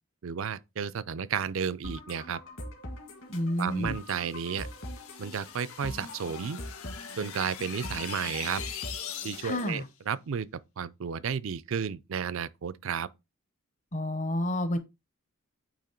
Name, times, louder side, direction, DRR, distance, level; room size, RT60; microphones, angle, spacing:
voice 1, 0.2-2.4 3.6-4.7 5.2-6.6 7.2-8.6 9.2-13.1, right 7 dB, 65° right, 0.4 m, -33 dB
sound 1, 1.8-9.8, left 1 dB, 60° left, 2.0 m, -43 dB
voice 2, 3.3-4.0 9.4-9.8 13.9-14.8, left 1 dB, 35° left, 0.7 m, -29 dB
sound 2, 3.8-9.8, left 9 dB, 80° left, 1.1 m, -42 dB
8.8 x 3.0 x 4.4 m
head